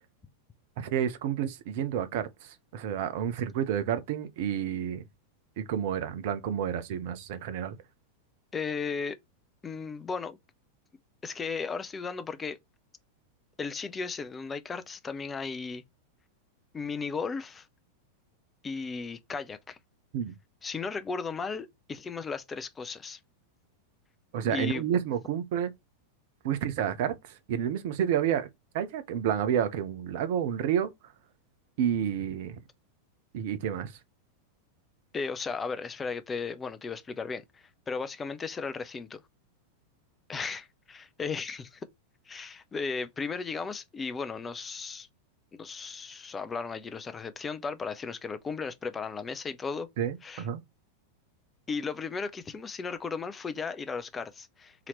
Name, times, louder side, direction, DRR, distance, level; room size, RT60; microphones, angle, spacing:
voice 1, 0.8-5.0 5.6-7.8 20.1-20.3 24.3-25.7 26.4-28.5 28.7-31.1 31.8-32.6 33.3-34.0 50.0-50.6, right 9 dB, 50° right, 0.6 m, -30 dB
voice 2, 8.5-9.2 9.6-10.4 11.2-12.6 13.6-15.8 16.7-17.7 18.6-19.8 20.6-23.2 24.5-24.8 35.1-39.2 40.3-41.8 42.3-45.1 45.5-49.9 50.2-50.4 51.7-54.9, left 5 dB, 15° left, 0.5 m, -35 dB
3.9 x 2.8 x 3.0 m
figure-of-eight pair, 90°, 0 cm